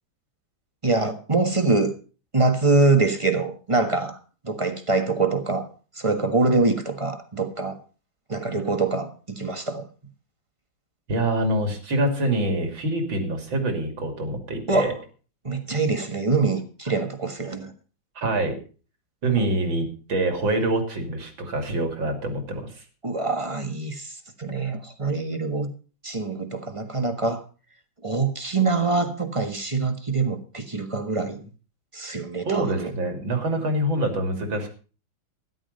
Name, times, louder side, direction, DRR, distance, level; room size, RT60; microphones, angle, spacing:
voice 1, 0.8-1.9 2.3-4.2 4.4-5.7 5.9-7.8 8.3-9.9 14.7-15.0 15.4-17.7 23.0-25.7 26.0-27.4 28.0-31.4 31.9-32.9, right 3 dB, 20° right, 1.3 m, -24 dB
voice 2, 11.1-14.9 18.2-18.6 19.2-22.8 32.4-34.7, right 1 dB, 75° right, 3.5 m, -25 dB
13.5 x 11.0 x 5.4 m
omnidirectional pair, 2.2 m